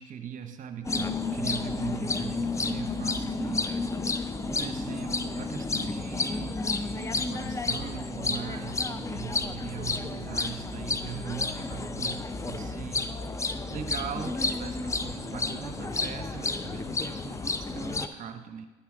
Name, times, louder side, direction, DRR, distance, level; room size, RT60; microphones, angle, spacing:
voice 1, 0.0-4.2 4.5-18.7, right 8 dB, 50° right, 7 dB, 0.8 m, -40 dB
sound 1, 0.8-18.1, left 3 dB, 20° left, 0.5 m, -31 dB
11.5 x 5.7 x 3.8 m, 1.2 s
supercardioid pair, 75°, 17 cm